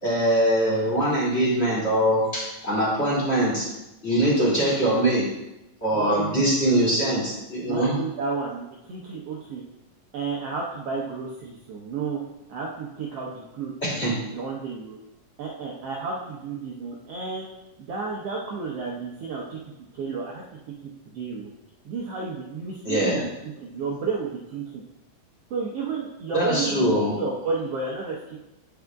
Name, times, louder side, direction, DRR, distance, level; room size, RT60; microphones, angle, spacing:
voice 1, 0.0-3.7 4.0-5.2 5.8-7.9 13.8-14.1 22.8-23.2 26.3-27.1, right 1 dB, 20° left, -7 dB, 2.2 m, -22 dB
voice 2, 5.9-6.4 7.7-9.6 10.1-12.2 12.5-15.0 15.4-17.4 17.8-19.6 19.9-20.4 21.1-21.5 21.8-23.3 23.6-24.8 25.5-28.4, right 4 dB, 80° right, -2 dB, 1.3 m, -32 dB
10.0 x 4.9 x 3.5 m, 0.94 s
omnidirectional pair, 3.9 m